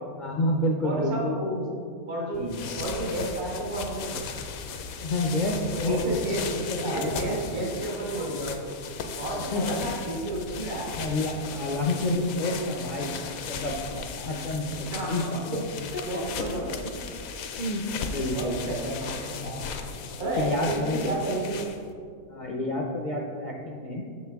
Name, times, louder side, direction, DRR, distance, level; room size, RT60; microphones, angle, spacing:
voice 1, 0.1-1.6 2.3-2.6 5.0-7.4 9.5-9.8 10.6-15.6 16.1-16.5 17.6-17.8 18.1-18.7 20.2-21.2 22.3-24.0, left 1 dB, 60° left, -1 dB, 0.5 m, -29 dB
voice 2, 0.8-1.3 2.1-2.5 2.8-4.3 5.8-8.8 9.2-11.0 14.9-15.7 16.0-16.6 18.3-19.7 20.2-21.7, right 1 dB, 85° right, -4 dB, 2.1 m, -32 dB
sound 1, 2.3-21.9, left 5 dB, 75° left, 1.0 m, -37 dB
6.9 x 6.3 x 3.5 m, 2.3 s
omnidirectional pair, 1.5 m